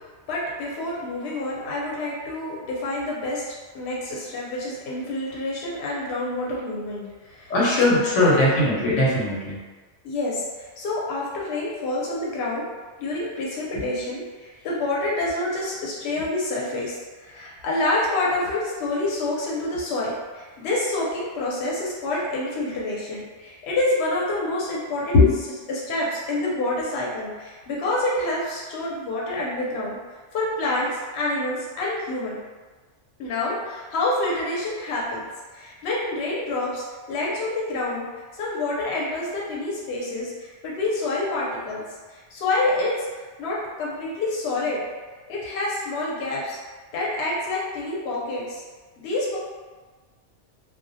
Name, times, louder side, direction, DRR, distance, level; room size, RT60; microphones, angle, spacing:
voice 1, 0.3-3.4 3.7-7.5 7.9-8.5 10.0-12.6 13.0-25.2 25.7-30.0 30.3-32.4 33.2-35.3 35.5-38.0 38.3-41.8 42.1-42.9 43.4-44.8 45.3-46.6 46.9-48.6 49.0-49.4, left 2 dB, 65° left, -5 dB, 0.8 m, -27 dB
voice 2, 7.5-9.6 13.7-13.8 25.1-25.3, left 2 dB, 85° left, -5 dB, 1.0 m, -19 dB
2.2 x 2.1 x 2.6 m, 1.4 s
omnidirectional pair, 1.2 m